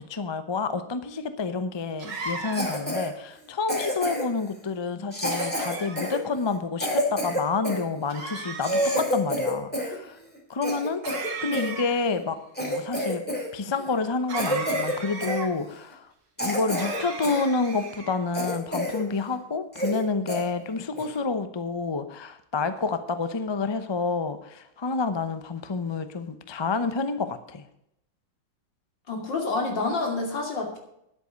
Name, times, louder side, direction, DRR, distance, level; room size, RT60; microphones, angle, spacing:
voice 1, 0.0-10.2 10.5-11.0 11.4-13.2 13.5-16.1 16.4-27.7, left 4 dB, 35° left, 10 dB, 0.4 m, -29 dB
sound 1, 2.0-2.9 5.3-6.2 8.1-9.1 11.0-12.1 14.3-15.5 16.8-18.2, right 4 dB, 70° right, 2.6 m, -36 dB
Cough, 2.5-3.1 3.7-4.4 5.1-7.8 8.3-8.4 8.6-10.0 10.3-11.7 12.2-12.3 12.6-13.5 13.7-14.0 14.3-15.0 15.2-15.4 15.9-16.0 16.4-17.4 17.8-17.9 18.3-19.0 19.3-19.4 19.7-20.0 20.3-20.4 21.0-21.2, equal, 5° left, 2.5 m, -28 dB
voice 2, 29.1-30.8, left 3 dB, 75° left, 2 dB, 3.3 m, -28 dB
11.0 x 8.4 x 6.5 m, 0.78 s
omnidirectional pair, 2.0 m